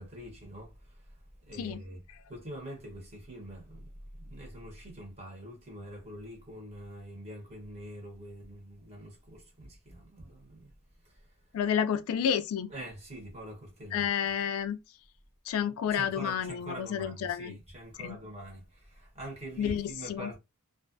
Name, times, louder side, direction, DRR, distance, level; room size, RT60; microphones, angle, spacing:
voice 1, 0.0-2.0 2.3-10.7 11.0-11.6 12.7-14.3 15.9-20.4, right 1 dB, 30° right, 1.1 m, -45 dB
voice 2, 11.5-12.7 13.9-14.8 15.5-17.6 18.0-18.2 19.6-20.3, left 8 dB, 70° left, 0.3 m, -30 dB
2.4 x 2.2 x 2.5 m
head